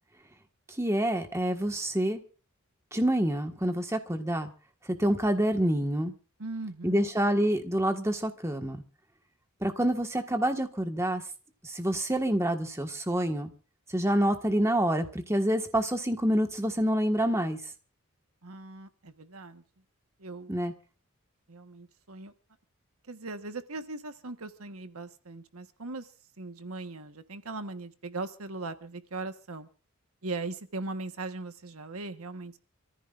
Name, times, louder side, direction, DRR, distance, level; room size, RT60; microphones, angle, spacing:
voice 1, 0.8-2.2 2.9-4.5 5.0-6.1 6.8-8.8 9.6-11.2 11.6-13.5 13.9-17.6 20.5-20.7, right 1 dB, 15° right, 5 dB, 1.7 m, -27 dB
voice 2, 6.4-7.1 18.4-19.6 20.2-20.5 21.5-22.3 23.1-26.1 26.4-29.7 30.2-32.6, right 3 dB, 80° right, 8 dB, 1.4 m, -39 dB
28.5 x 15.0 x 2.6 m, 0.37 s
head